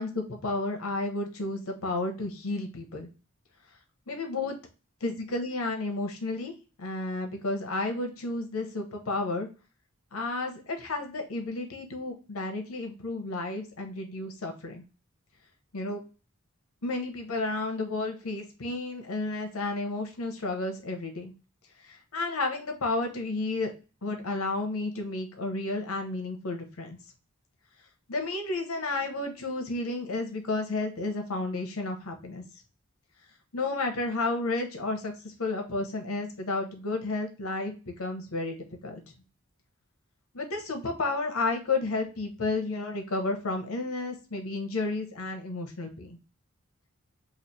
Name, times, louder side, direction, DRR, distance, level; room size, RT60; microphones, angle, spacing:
voice 1, 0.0-3.1 4.1-4.6 5.0-9.5 10.1-14.8 15.7-16.0 16.8-21.3 21.8-23.7 24.0-27.0 28.1-32.4 33.5-38.6 38.8-39.0 40.3-46.2, left 2 dB, 90° left, 4 dB, 0.9 m, -32 dB
3.2 x 2.5 x 4.1 m, 0.33 s
head